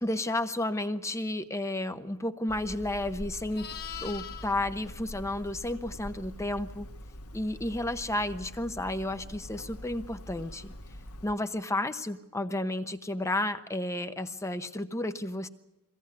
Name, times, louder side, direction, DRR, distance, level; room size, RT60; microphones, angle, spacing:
voice 1, 0.0-3.7 4.0-6.9 7.3-10.7 11.2-15.5, left 1 dB, 15° left, 9 dB, 0.9 m, -32 dB
Hammer, 2.5-11.4, equal, 80° left, 1.5 m, -44 dB
Livestock farm animals working animals, 3.4-6.1 10.5-10.7, left 9 dB, 45° left, 1.6 m, -44 dB
22.5 x 17.0 x 9.7 m, 0.95 s
head